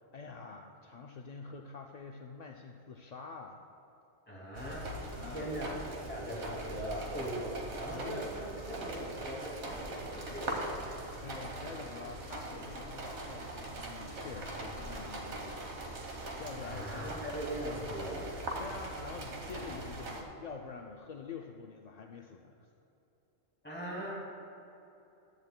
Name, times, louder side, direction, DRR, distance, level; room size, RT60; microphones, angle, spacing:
voice 1, 0.1-3.6 5.2-5.5 7.9-8.3 9.7-10.0 11.2-16.9 18.6-22.6, left 5 dB, 55° left, 2 dB, 0.5 m, -47 dB
voice 2, 4.3-4.9 5.2-11.2 14.3-14.7 16.7-18.5 23.6-24.2, equal, 10° left, -5 dB, 2.3 m, -40 dB
sound 1, 4.5-20.2, right 2 dB, 85° right, 1.5 m, -41 dB
14.5 x 10.5 x 2.2 m, 3.0 s
omnidirectional pair, 1.1 m